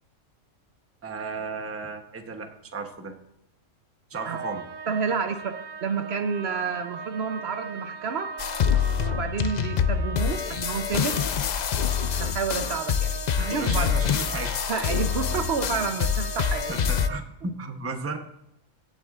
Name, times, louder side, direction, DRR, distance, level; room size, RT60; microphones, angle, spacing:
voice 1, 1.0-3.1 4.1-4.6 13.5-14.5 16.7-18.2, right 3 dB, 15° right, 5 dB, 0.7 m, -34 dB
sound 1, 4.1-17.2, right 6 dB, 80° right, 0.4 m, -39 dB
voice 2, 4.9-8.3 9.0-11.2 12.1-14.0 14.7-16.7, right 5 dB, 60° right, 7 dB, 0.9 m, -30 dB
sound 2, 8.4-17.1, left 8 dB, 70° left, 0.4 m, -26 dB
17.0 x 7.9 x 2.4 m, 0.83 s
omnidirectional pair, 1.3 m